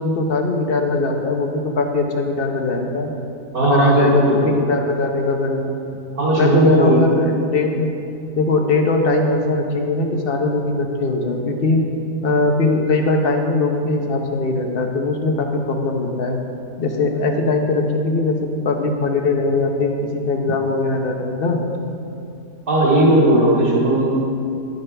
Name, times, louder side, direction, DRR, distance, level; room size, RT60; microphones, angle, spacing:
voice 1, 0.0-3.1 3.6-5.8 6.4-7.9 8.3-11.8 12.2-16.4 16.8-21.6, left 3 dB, 45° left, 3 dB, 0.9 m, -20 dB
voice 2, 3.5-4.5 6.1-7.0 22.7-24.2, right 1 dB, 55° right, -6 dB, 2.3 m, -16 dB
11.0 x 10.5 x 3.4 m, 2.6 s
omnidirectional pair, 1.8 m